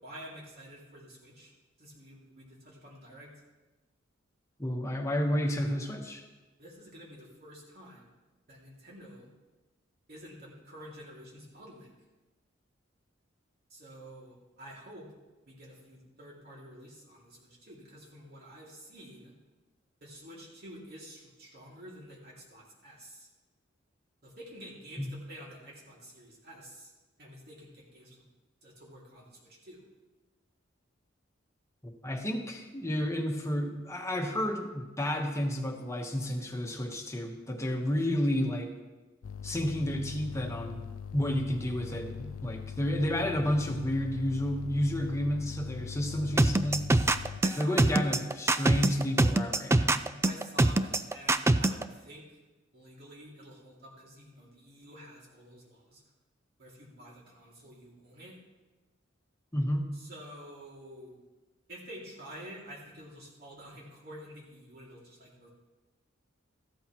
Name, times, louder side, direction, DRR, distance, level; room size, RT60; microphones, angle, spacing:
voice 1, 0.0-1.5 1.8-3.3 6.6-8.1 8.5-9.3 10.1-11.9 13.7-15.1 15.5-19.3 20.0-23.3 24.2-26.9 27.2-28.3 28.6-29.8 47.4-48.0 50.2-52.4 52.7-56.0 56.6-58.4 59.9-61.2 61.7-65.5, equal, 55° right, -4 dB, 2.6 m, -49 dB
voice 2, 4.6-6.2 25.0-25.1 32.0-38.7 39.4-46.8 47.6-50.0 59.5-59.8, left 1 dB, 15° left, 2 dB, 1.3 m, -31 dB
sound 1, 39.2-47.4, left 7 dB, 85° left, 0.4 m, -41 dB
sound 2, 46.4-51.8, right 2 dB, 15° right, 0.3 m, -24 dB
14.0 x 12.5 x 3.1 m, 1.1 s
head